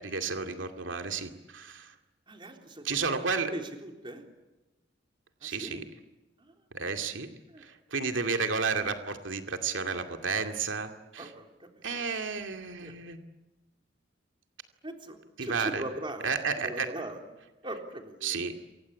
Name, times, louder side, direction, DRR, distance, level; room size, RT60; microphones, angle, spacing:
voice 1, 0.0-1.9 2.8-3.5 5.4-5.8 6.7-7.3 7.6-11.3 11.8-13.2 15.4-15.8 16.2-16.9 18.2-18.5, right 5 dB, 90° right, 5 dB, 2.4 m, -32 dB
voice 2, 2.3-4.3 5.4-5.8 6.4-6.5 7.5-7.7 11.2-12.1 12.8-12.9 14.8-16.3 16.6-17.2 17.6-18.4, right 1 dB, 25° right, 3 dB, 3.8 m, -40 dB
28.0 x 24.5 x 8.5 m, 1.1 s
head